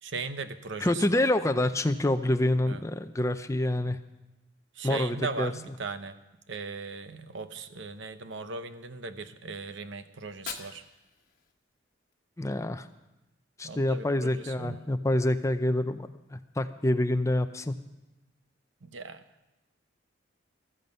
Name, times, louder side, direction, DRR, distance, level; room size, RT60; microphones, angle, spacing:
voice 1, 0.0-1.2 2.7-2.8 4.8-6.1 6.5-10.8 13.6-14.9 18.8-19.2, right 4 dB, 70° right, 10 dB, 0.9 m, -38 dB
voice 2, 0.8-4.0 4.8-5.5 12.4-12.9 13.6-17.7, left 1 dB, 15° left, 10 dB, 0.5 m, -27 dB
Fire, 10.1-12.2, left 7 dB, 45° left, 1.2 m, -45 dB
14.5 x 14.0 x 5.4 m, 0.98 s
head